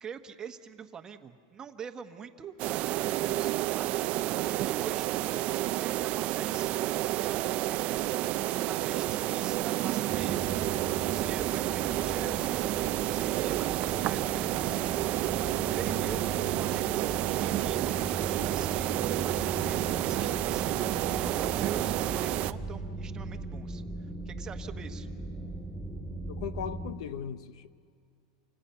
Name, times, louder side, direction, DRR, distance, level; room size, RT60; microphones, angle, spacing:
voice 1, 0.0-5.2 5.8-6.9 7.2-8.0 8.5-10.5 10.9-12.6 13.1-16.9 17.3-25.1, right 7 dB, 20° right, 1.3 m, -44 dB
sound 1, 2.6-22.5, right 15 dB, 40° right, 0.6 m, -30 dB
sound 2, 7.3-21.1, left 4 dB, 40° left, 2.6 m, -53 dB
sound 3, 10.1-26.9, right 2 dB, ahead, 2.5 m, -39 dB
voice 2, 26.3-27.7, left 9 dB, 70° left, 0.9 m, -38 dB
29.0 x 25.5 x 5.8 m
supercardioid pair, 140°, 3 cm